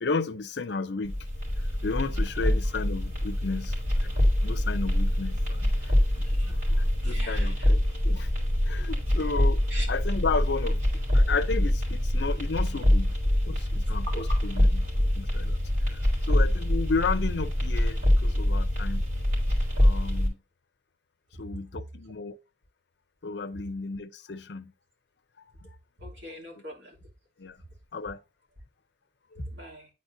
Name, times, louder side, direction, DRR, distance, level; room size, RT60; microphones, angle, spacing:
voice 1, 0.0-1.2 1.8-3.7 4.0-4.1 4.4-7.8 8.0-8.3 8.6-9.6 9.9-10.8 11.1-13.2 13.4-15.6 15.9-19.0 19.8-20.4 21.4-22.4 23.2-24.7 26.5-26.6 27.4-27.6 27.9-28.2 29.3-29.4, left 4 dB, 70° left, 0.6 m, -33 dB
sound 1, 1.0-20.3, left 1 dB, 45° right, 3.3 m, -25 dB
voice 2, 6.2-6.8 7.0-7.7 9.7-9.9 14.1-14.4 26.0-27.0 29.5-29.9, equal, 75° right, 2.6 m, -41 dB
9.5 x 4.3 x 2.6 m
head